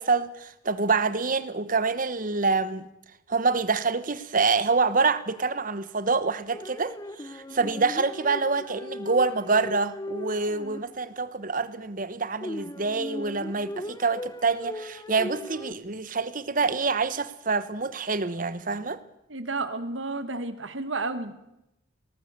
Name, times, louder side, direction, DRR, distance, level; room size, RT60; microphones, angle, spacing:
voice 1, 0.0-2.9 3.3-6.9 7.2-19.0, right 4 dB, 45° right, 1.1 m, -26 dB
sound 1, 6.5-11.1 12.4-15.7, left 1 dB, 20° left, 0.7 m, -38 dB
voice 2, 19.3-21.3, right 3 dB, 75° right, 1.6 m, -31 dB
19.5 x 18.0 x 8.1 m
head